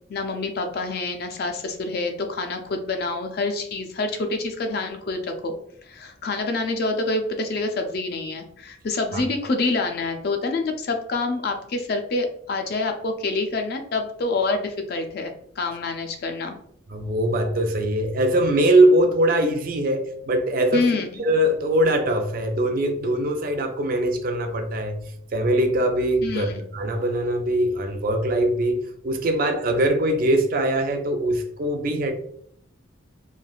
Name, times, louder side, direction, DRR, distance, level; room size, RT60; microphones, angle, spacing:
voice 1, 0.1-5.5 5.9-16.6 20.7-21.2 26.2-26.6, left 3 dB, 50° left, 5 dB, 0.4 m, -27 dB
voice 2, 16.9-20.9 21.2-25.0 25.3-32.1, right 1 dB, 45° right, 5 dB, 0.4 m, -22 dB
3.2 x 2.3 x 2.3 m, 0.66 s
head